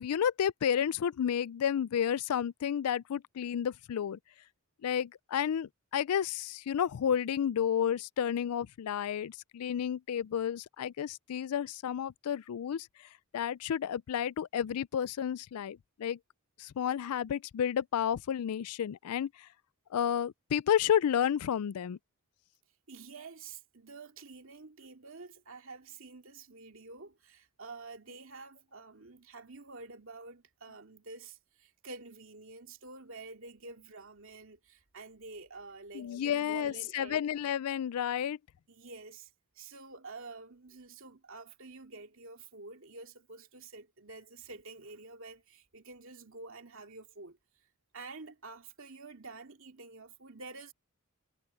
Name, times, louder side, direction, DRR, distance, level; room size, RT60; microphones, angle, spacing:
voice 1, 0.0-4.2 4.8-12.9 13.3-16.2 16.6-19.5 19.9-22.0 35.9-38.4, left 9 dB, 80° left, 0.4 m, -31 dB
voice 2, 22.9-37.2 38.7-39.3 39.6-47.4 47.9-50.7, right 3 dB, 60° right, 2.6 m, -48 dB
head